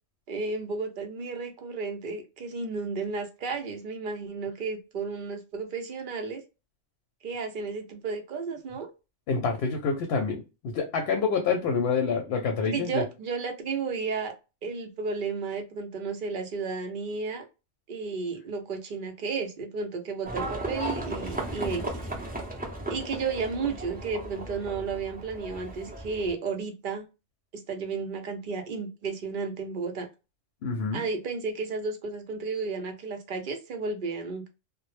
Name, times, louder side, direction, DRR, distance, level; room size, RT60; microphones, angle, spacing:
voice 1, 0.3-6.4 7.2-8.9 12.6-14.3 14.6-17.4 17.9-22.0 22.9-27.1 27.5-30.1 30.9-34.5, right 4 dB, 60° right, 5 dB, 0.6 m, -33 dB
voice 2, 9.3-13.0 30.6-31.0, left 5 dB, 65° left, 3 dB, 0.8 m, -27 dB
Livestock farm animals working animals, 20.2-26.3, right 1 dB, 10° right, 0.4 m, -35 dB
2.1 x 2.0 x 3.0 m, 0.29 s
omnidirectional pair, 1.2 m